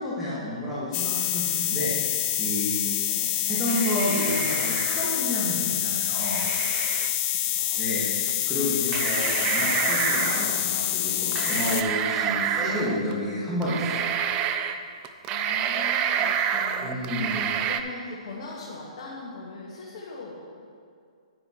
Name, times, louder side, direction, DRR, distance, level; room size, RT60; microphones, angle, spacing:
voice 1, 0.0-2.9 3.5-6.5 7.8-14.1 16.8-17.5, left 1 dB, ahead, -12 dB, 1.9 m, -30 dB
sound 1, 0.9-11.8, left 13 dB, 30° left, 0.5 m, -27 dB
voice 2, 3.0-3.5 7.3-7.9 13.0-14.0 15.3-20.8, left 3 dB, 55° left, -5 dB, 1.7 m, -41 dB
sound 2, 3.6-5.3 6.2-7.1 8.3-8.4 8.9-10.6 11.3-13.1 13.6-14.8 15.0-17.8, right 8 dB, 25° right, 0.4 m, -28 dB
10.0 x 9.5 x 3.1 m, 2.3 s
hypercardioid pair, 140°, 4 cm